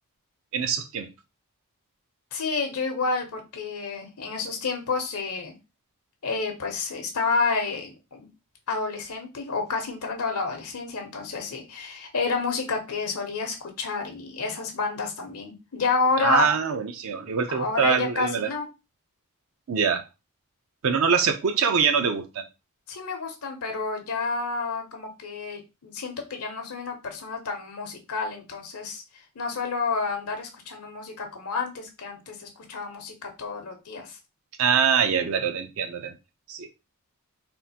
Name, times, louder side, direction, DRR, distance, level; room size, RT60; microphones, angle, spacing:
voice 1, 0.5-1.1 16.2-18.5 19.7-20.0 20.8-22.4 34.6-36.2 36.5-36.7, right 6 dB, 65° right, 0.4 m, -24 dB
voice 2, 2.3-5.5 6.2-8.3 8.7-16.5 17.5-18.7 22.9-29.0 29.4-34.2, left 4 dB, 80° left, 0.7 m, -29 dB
3.5 x 2.4 x 2.7 m
head